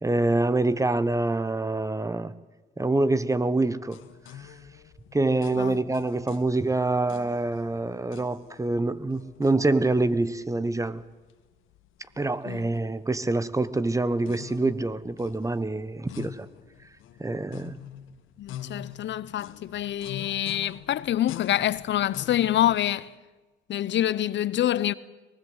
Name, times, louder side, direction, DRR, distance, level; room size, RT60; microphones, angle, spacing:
voice 1, 0.0-2.3 2.8-4.0 5.1-11.0 12.2-16.5 17.2-17.8, right 2 dB, 15° right, 1.1 m, -26 dB
sound 1, 3.9-22.8, left 10 dB, 90° left, 1.7 m, -45 dB
voice 2, 18.4-23.1 23.7-24.9, left 12 dB, 65° left, 0.8 m, -26 dB
23.5 x 20.0 x 8.0 m
cardioid pair, 90°, 20 cm